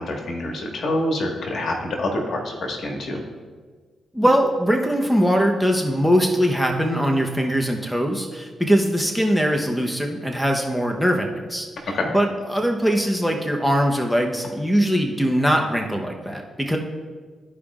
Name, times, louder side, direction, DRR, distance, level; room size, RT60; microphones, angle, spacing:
voice 1, 0.0-3.2 11.9-12.1, left 1 dB, 65° left, 1 dB, 1.6 m, -26 dB
voice 2, 4.1-11.7 12.1-16.8, equal, ahead, 1 dB, 0.9 m, -21 dB
13.0 x 5.0 x 2.5 m, 1.5 s
cardioid pair, 65°, 0 cm